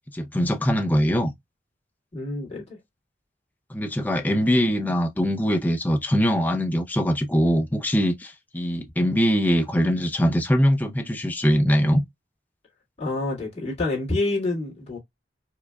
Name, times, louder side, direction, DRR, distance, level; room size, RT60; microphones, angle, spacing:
voice 1, 0.1-1.3 3.7-12.0, equal, 10° left, 0.5 m, -22 dB
voice 2, 2.1-2.8 13.0-15.0, left 2 dB, 35° left, 1.8 m, -27 dB
4.8 x 2.2 x 2.2 m
head